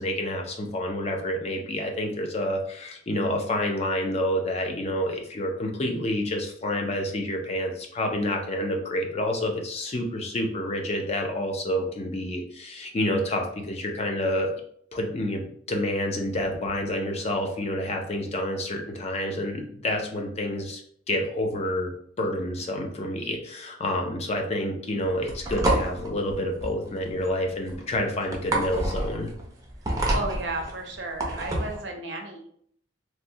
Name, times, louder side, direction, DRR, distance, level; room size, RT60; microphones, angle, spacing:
voice 1, 0.0-14.6 14.9-15.4 15.7-20.8 21.1-21.9 22.2-29.3, left 1 dB, 35° left, 2 dB, 0.5 m, -28 dB
sound 1, 25.0-31.8, right 1 dB, 20° right, 0.5 m, -28 dB
voice 2, 29.9-32.5, right 2 dB, 70° right, 2 dB, 0.6 m, -34 dB
3.0 x 2.2 x 2.6 m, 0.63 s
head